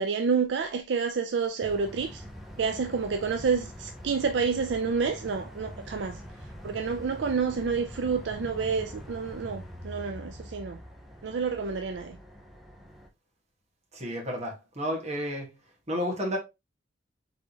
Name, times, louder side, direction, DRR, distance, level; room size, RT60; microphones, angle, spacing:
voice 1, 0.0-2.2 2.6-6.2 6.6-10.8 11.2-12.2, right 5 dB, 70° right, 0.4 m, -29 dB
sound 1, 1.6-13.1, equal, ahead, 0.8 m, -44 dB
voice 2, 13.9-15.5 15.9-16.4, equal, 35° right, 1.5 m, -31 dB
4.1 x 3.6 x 2.9 m
head